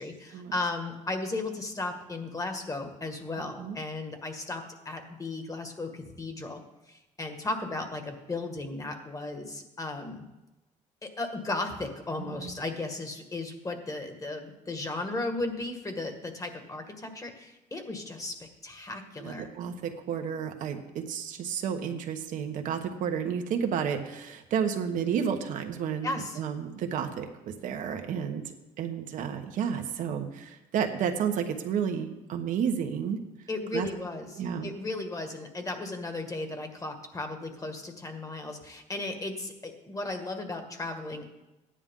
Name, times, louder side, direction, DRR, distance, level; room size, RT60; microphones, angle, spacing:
voice 1, 0.0-6.6 6.9-10.3 11.0-19.5 26.0-26.4 33.5-41.2, left 2 dB, 25° left, 5 dB, 1.8 m, -35 dB
voice 2, 12.2-12.5 19.2-33.2 33.7-33.9 34.4-34.7, right 7 dB, 70° right, 5 dB, 1.3 m, -31 dB
13.5 x 9.9 x 3.8 m, 1.0 s
cardioid pair, 90°, 14 cm